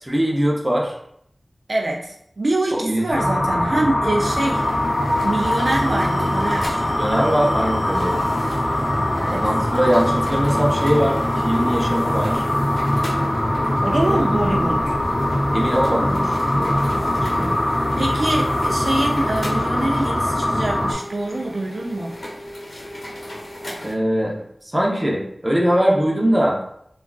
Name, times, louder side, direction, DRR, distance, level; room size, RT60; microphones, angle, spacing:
voice 1, 0.0-0.9 2.7-3.0 7.0-8.2 9.3-12.5 14.1-14.4 15.5-17.5 23.8-24.3 24.7-26.6, equal, 15° right, -3 dB, 0.7 m, -21 dB
voice 2, 1.7-4.6 5.2-6.8 9.1-9.5 13.8-15.0 18.0-22.2, right 1 dB, 75° right, -1 dB, 0.4 m, -24 dB
sound 1, 3.1-20.9, left 1 dB, 50° left, 0.5 m, -22 dB
sound 2, 4.1-23.9, left 1 dB, 85° left, 0.8 m, -36 dB
sound 3, 4.5-19.3, right 1 dB, 50° right, 0.8 m, -42 dB
3.5 x 2.3 x 2.3 m, 0.71 s
wide cardioid pair, 60°, 0 cm